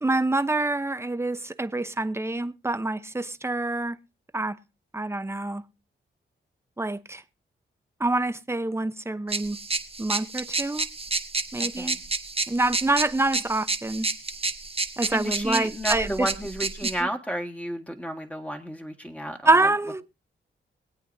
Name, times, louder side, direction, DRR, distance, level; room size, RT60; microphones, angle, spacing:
voice 1, 0.0-4.0 4.3-4.6 4.9-5.6 6.8-7.2 8.0-9.6 10.0-10.9 11.5-12.0 12.5-14.1 15.0-16.3 17.0-17.1 19.5-20.0, right 2 dB, 10° right, 0.9 m, -26 dB
sound 1, 9.3-17.0, right 3 dB, 25° right, 1.2 m, -30 dB
voice 2, 11.6-12.0 15.1-19.5, equal, 5° left, 1.9 m, -32 dB
23.0 x 8.4 x 2.7 m
cardioid pair, 55°, 21 cm